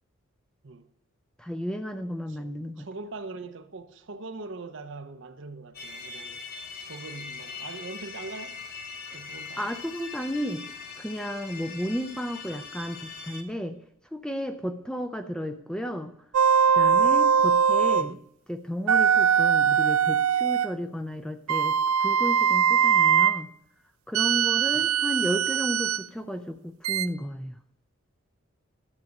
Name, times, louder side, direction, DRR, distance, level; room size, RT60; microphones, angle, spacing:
voice 1, 1.4-2.9 9.6-10.6 11.0-13.8 14.1-16.1 16.7-18.2 18.5-23.5 24.1-27.6, equal, 5° left, 0.5 m, -33 dB
voice 2, 2.3-6.5 6.7-8.6 9.1-9.7 18.0-18.3 24.7-24.9, right 3 dB, 60° right, 0.8 m, -42 dB
sound 1, 5.7-13.4, left 5 dB, 45° left, 1.0 m, -41 dB
sound 2, 16.3-18.1 18.9-20.7 21.5-23.4 24.1-26.0 26.8-27.1, right 7 dB, 75° right, 0.3 m, -21 dB
12.0 x 7.2 x 5.3 m
head